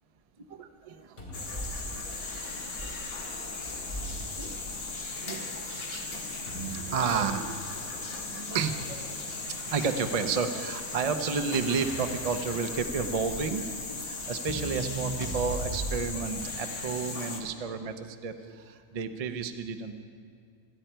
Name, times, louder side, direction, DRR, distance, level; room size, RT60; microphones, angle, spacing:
voice 1, 0.4-1.2 1.5-1.7 2.0-2.1 3.6-3.7 4.4-4.6 5.2-9.3 9.6-20.0, right 5 dB, 70° right, 8 dB, 0.3 m, -32 dB
sound 1, 1.2-2.9 3.5-5.0 5.4-5.5 6.5-7.6 8.5-8.6 11.8-13.4 14.1-14.3, right 1 dB, 30° left, 3.2 m, -42 dB
sound 2, 1.3-17.4, left 3 dB, 60° left, 2.0 m, -37 dB
Crackle, 2.8-16.4, right 3 dB, 25° right, 0.7 m, -40 dB
26.5 x 10.0 x 4.5 m, 2.2 s
omnidirectional pair, 1.7 m